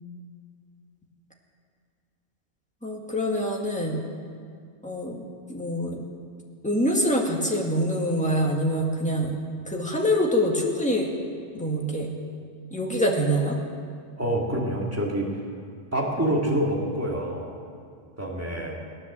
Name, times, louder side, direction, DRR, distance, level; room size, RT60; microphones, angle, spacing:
voice 1, 2.8-4.0 4.8-5.2 5.5-6.0 6.6-9.4 9.7-11.1 11.5-12.1 12.7-13.6, equal, 5° left, -1 dB, 1.9 m, -25 dB
voice 2, 14.2-15.3 15.9-17.5 18.2-18.8, right 1 dB, 10° right, -2 dB, 2.2 m, -26 dB
18.0 x 9.9 x 7.4 m, 2.3 s
omnidirectional pair, 1.3 m